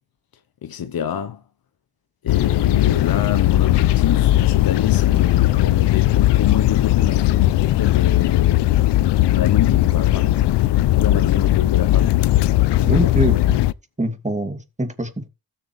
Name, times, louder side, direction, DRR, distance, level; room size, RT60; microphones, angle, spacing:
voice 1, 0.6-1.4 2.2-10.4 10.9-12.2 12.8-13.1, left 9 dB, 60° left, 1.0 m, -27 dB
sound 1, 2.3-13.7, left 15 dB, 80° left, 0.6 m, -17 dB
voice 2, 12.8-13.6 14.0-15.3, right 1 dB, 15° right, 2.6 m, -24 dB
16.0 x 6.9 x 3.3 m
supercardioid pair, 40°, 41 cm